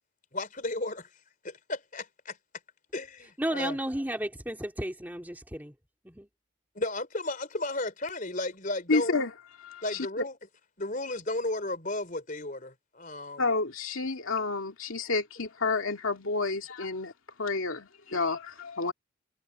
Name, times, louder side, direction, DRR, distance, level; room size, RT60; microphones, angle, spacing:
voice 1, 0.3-1.1 1.4-2.4 2.9-3.8 6.7-9.2 9.8-10.4 10.8-13.5, left 2 dB, 40° left, 4.3 m, -34 dB
voice 2, 3.4-5.7 6.0-6.3, right 1 dB, 10° right, 2.5 m, -33 dB
voice 3, 8.9-9.3 9.6-10.1 13.4-17.1 17.4-18.9, left 3 dB, 85° left, 2.4 m, -30 dB
head